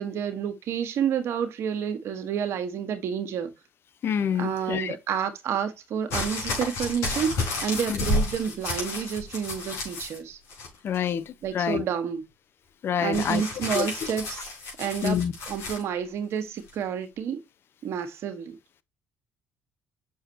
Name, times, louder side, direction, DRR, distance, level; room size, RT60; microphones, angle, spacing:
voice 1, 0.0-3.5 4.4-10.4 11.4-12.2 13.0-14.5 14.8-15.2 15.5-17.4 17.8-18.6, right 8 dB, 65° right, 1.4 m, -29 dB
voice 2, 4.0-4.9 7.9-8.0 10.8-11.8 12.8-13.4 13.7-13.9 15.0-15.3, left 8 dB, 55° left, 0.8 m, -27 dB
sound 1, 6.1-10.2 10.5-11.1 13.1-15.8 16.7-16.8, left 2 dB, 75° left, 5.1 m, -31 dB
7.1 x 6.2 x 2.8 m
supercardioid pair, 70°, 5 cm